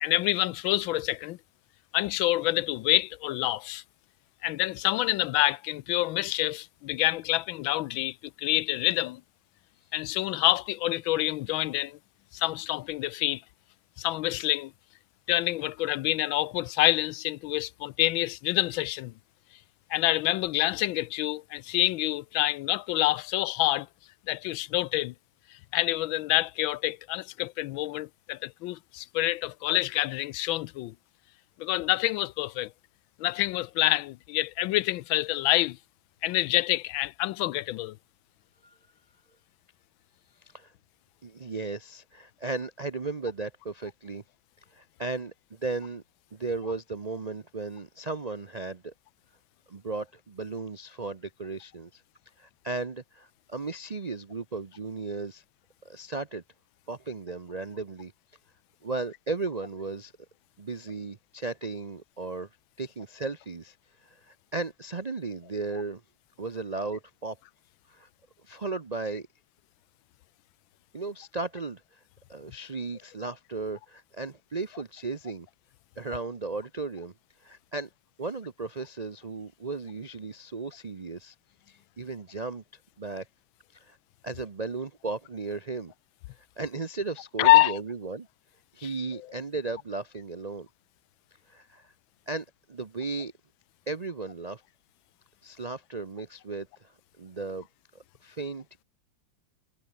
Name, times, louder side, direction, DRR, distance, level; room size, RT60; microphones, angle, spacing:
voice 1, 0.0-1.4 1.9-3.8 4.4-9.2 9.9-12.0 12.3-13.4 14.0-14.7 15.3-19.1 19.9-23.9 24.3-25.1 25.5-30.9 31.6-32.7 33.2-35.8 36.2-38.0 87.4-87.8, left 17 dB, 90° left, 1.4 m, -27 dB
voice 2, 40.4-40.7 41.2-44.2 44.7-46.0 46.3-48.9 49.7-52.0 52.4-55.4 55.8-56.4 56.9-58.1 58.8-60.1 60.6-62.5 62.8-66.0 66.4-67.4 67.9-68.1 68.4-69.3 70.9-72.0 72.3-75.5 76.0-77.1 77.4-77.9 78.2-81.3 81.7-82.6 83.0-83.3 83.7-84.0 84.2-85.9 86.4-88.3 88.7-90.7 91.5-91.9 92.3-93.3 93.9-94.6 95.4-97.7 97.9-98.7, right 3 dB, 55° right, 0.4 m, -35 dB
omnidirectional pair, 2.1 m